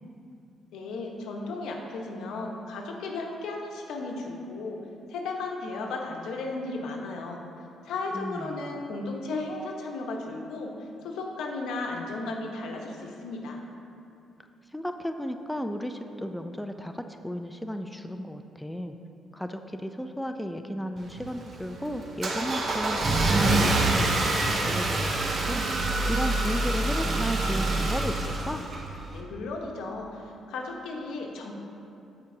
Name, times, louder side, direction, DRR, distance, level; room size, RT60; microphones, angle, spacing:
voice 1, 0.7-4.8 5.1-7.4 7.8-13.6 29.1-31.5, left 3 dB, 85° left, 1 dB, 1.1 m, -35 dB
voice 2, 8.1-8.8 14.7-19.0 19.3-25.7 26.1-28.6, equal, 5° left, 6 dB, 0.4 m, -34 dB
Car / Engine starting, 21.0-29.1, right 2 dB, 50° right, 1.0 m, -26 dB
15.0 x 5.2 x 2.8 m, 2.7 s
cardioid pair, 90°, 0 cm